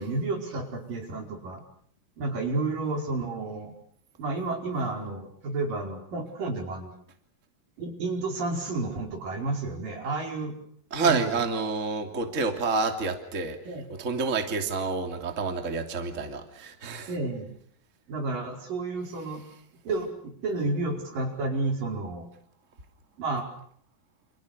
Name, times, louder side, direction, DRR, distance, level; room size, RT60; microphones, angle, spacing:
voice 1, 0.0-1.6 2.2-3.7 4.2-6.9 7.8-10.5 11.0-11.4 13.7-13.8 17.1-17.5 18.1-19.4 19.8-22.3 23.2-23.5, right 3 dB, 70° right, 3 dB, 6.7 m, -31 dB
voice 2, 10.9-17.1, right 4 dB, 20° right, 5 dB, 3.0 m, -29 dB
29.5 x 28.0 x 6.9 m, 0.63 s
omnidirectional pair, 4.0 m